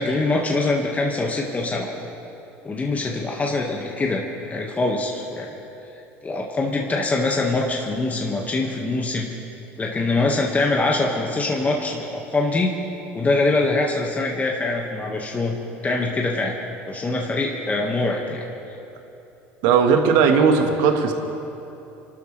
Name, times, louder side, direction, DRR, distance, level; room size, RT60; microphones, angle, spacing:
voice 1, 0.0-1.9 2.6-5.5 6.2-9.3 9.8-12.7 13.1-15.6 15.8-16.5 16.9-18.4, left 2 dB, 25° left, -1 dB, 1.7 m, -23 dB
voice 2, 19.6-21.1, right 6 dB, 75° right, 4 dB, 1.6 m, -17 dB
28.5 x 12.5 x 3.3 m, 3.0 s
hypercardioid pair, 85°, 7 cm